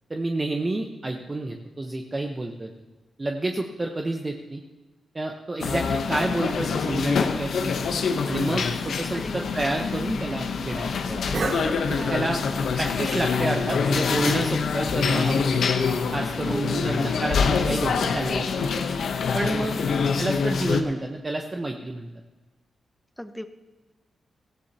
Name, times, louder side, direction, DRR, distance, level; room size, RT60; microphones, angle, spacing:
voice 1, 0.1-2.7 3.2-4.6 5.1-11.4 12.1-12.4 12.8-15.6 16.1-18.8 19.3-19.8 20.0-22.1, right 2 dB, 30° right, 2 dB, 1.0 m, -29 dB
sound 1, 5.6-20.8, left 5 dB, 80° left, 0.9 m, -25 dB
voice 2, 9.1-9.5 11.9-12.7 13.3-13.5 16.4-16.9 19.7-19.9 23.2-23.5, equal, 5° left, 9 dB, 0.8 m, -37 dB
Cough, 9.3-14.7, right 4 dB, 60° right, 1.1 m, -37 dB
17.5 x 14.5 x 2.9 m, 1.2 s
cardioid pair, 75°, 0 cm